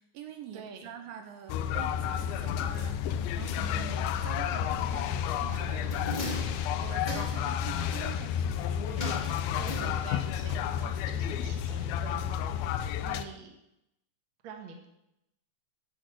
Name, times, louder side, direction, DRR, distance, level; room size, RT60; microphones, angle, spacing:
voice 1, 0.0-5.9 6.2-6.5 6.8-9.3, right 9 dB, 80° right, 6 dB, 2.3 m, -45 dB
voice 2, 0.5-0.9 9.5-12.3 13.0-13.5 14.4-14.9, right 5 dB, 55° right, 2 dB, 1.3 m, -46 dB
sound 1, 1.5-13.2, left 9 dB, 80° left, 2.3 m, -31 dB
sound 2, 5.5-7.6 9.0-10.4 10.7-10.8, left 1 dB, 30° left, 0.8 m, -39 dB
10.5 x 6.0 x 7.3 m, 0.86 s
omnidirectional pair, 4.6 m